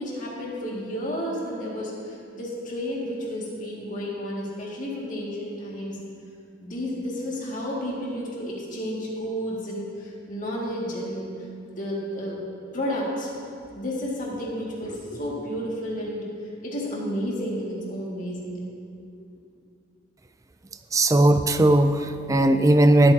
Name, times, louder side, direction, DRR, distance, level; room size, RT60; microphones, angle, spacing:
voice 1, 0.0-6.0 6.6-11.3 11.8-12.4 12.7-13.3 13.7-16.3 16.6-18.6 18.9-19.1, equal, 40° left, -4 dB, 2.2 m, -31 dB
voice 2, 20.9-23.1, right 1 dB, 15° right, 10 dB, 0.3 m, -18 dB
19.0 x 8.8 x 2.8 m, 2.4 s
head